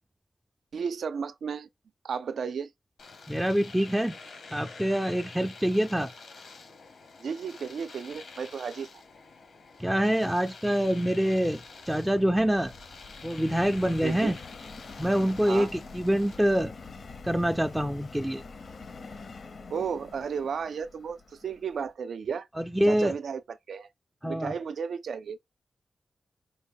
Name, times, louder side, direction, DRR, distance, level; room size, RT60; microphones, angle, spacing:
voice 1, 0.7-1.7 2.0-2.7 7.2-8.9 14.0-14.4 15.5-15.7 19.7-22.5 22.8-23.9 24.2-25.4, right 6 dB, 80° right, 0.4 m, -33 dB
Domestic sounds home sounds, 3.0-16.4, left 4 dB, 80° left, 1.1 m, -48 dB
voice 2, 3.3-4.2 4.5-6.1 9.8-11.6 11.9-12.7 13.2-14.4 15.0-16.7 17.2-18.4 22.6-23.1 24.2-24.5, equal, 5° right, 0.3 m, -25 dB
Subway metro underground, 10.6-21.9, left 4 dB, 60° left, 0.7 m, -46 dB
5.1 x 2.1 x 3.5 m
wide cardioid pair, 130°, 0 cm